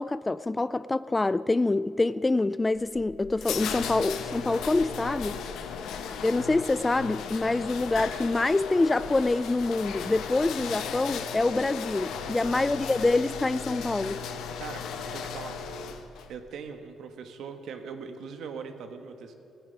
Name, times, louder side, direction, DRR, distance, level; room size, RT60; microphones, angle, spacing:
voice 1, 0.0-5.4 6.2-14.2, left 2 dB, 20° left, 0.3 m, -26 dB
sound 1, 2.7-16.3, left 7 dB, 80° left, 1.0 m, -36 dB
voice 2, 12.2-12.6 14.6-14.8 15.1-15.6 16.3-19.4, right 6 dB, 75° right, 1.4 m, -41 dB
14.5 x 9.7 x 9.8 m
cardioid pair, 90°, 0 cm